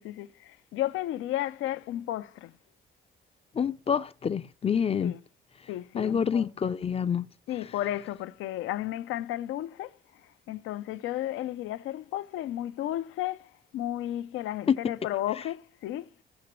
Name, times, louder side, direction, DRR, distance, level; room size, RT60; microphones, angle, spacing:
voice 1, 0.0-2.5 5.0-5.2 5.7-6.5 7.5-9.9 10.5-16.2, left 13 dB, 85° left, 0.5 m, -33 dB
voice 2, 3.6-5.2 5.9-7.3 14.7-14.9, left 7 dB, 30° left, 0.4 m, -27 dB
16.0 x 5.9 x 3.1 m
cardioid pair, 90°, 20 cm